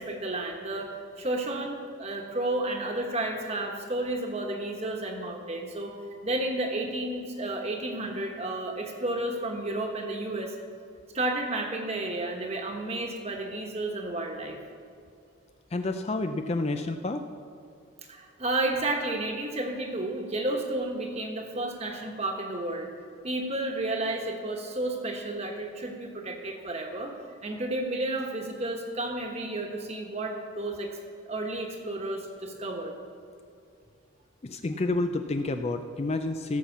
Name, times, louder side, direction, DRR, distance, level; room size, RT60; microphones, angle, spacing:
voice 1, 0.0-5.9 6.2-10.6 11.1-14.6 18.1-22.9 23.2-27.2 27.4-31.0 31.2-33.0, right 2 dB, 30° right, 2 dB, 1.3 m, -32 dB
voice 2, 15.7-17.2 34.4-36.6, left 2 dB, 30° left, 7 dB, 0.4 m, -29 dB
16.5 x 5.7 x 7.2 m, 2.3 s
head